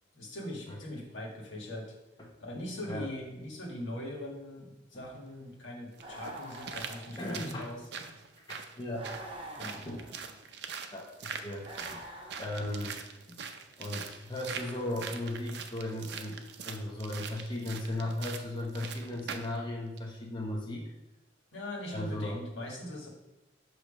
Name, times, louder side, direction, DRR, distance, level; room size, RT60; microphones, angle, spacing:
voice 1, 0.1-1.9 2.4-7.8 9.6-9.8 21.5-23.1, left 1 dB, 90° left, -2 dB, 1.8 m, -41 dB
sound 1, 5.1-5.2 6.0-19.6 20.0-20.1, right 6 dB, 60° right, 0.5 m, -43 dB
sound 2, 6.0-7.7 8.9-10.5 11.6-13.0 14.3-15.4, right 1 dB, 30° right, 1.0 m, -47 dB
voice 2, 7.2-7.7 8.5-9.1 9.8-10.1 10.9-11.7 11.9-12.0 12.4-13.0 13.3-13.4 13.8-16.4 16.6-20.9 21.9-22.4, left 1 dB, 25° left, -1 dB, 0.8 m, -36 dB
7.0 x 3.2 x 5.0 m, 0.96 s
head